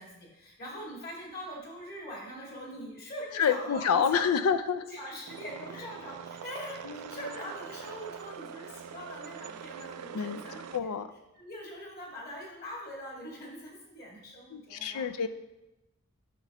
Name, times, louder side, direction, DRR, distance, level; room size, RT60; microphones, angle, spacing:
voice 1, 0.0-4.3 4.9-10.9 11.3-15.1, equal, 45° left, -3 dB, 2.0 m, -43 dB
voice 2, 3.3-4.8 6.9-7.2 10.1-10.4 10.7-11.1 14.5-15.3, left 7 dB, 85° left, 11 dB, 0.4 m, -28 dB
sound 1, 5.3-10.8, right 7 dB, 85° right, 0.4 m, -44 dB
8.4 x 6.0 x 2.9 m, 0.94 s
head